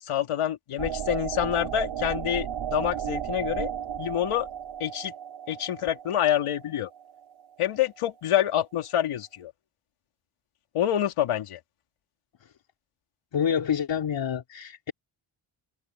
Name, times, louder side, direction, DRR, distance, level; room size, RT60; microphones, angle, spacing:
voice 1, 0.0-3.7 4.0-4.5 4.8-5.1 5.5-6.9 7.6-9.5 10.7-11.6, left 11 dB, 85° left, 3.2 m, -27 dB
sound 1, 0.8-7.4, right 9 dB, 65° right, 5.8 m, -34 dB
voice 2, 13.3-14.9, left 8 dB, 60° left, 3.4 m, -27 dB
cardioid pair, 95°, 50 cm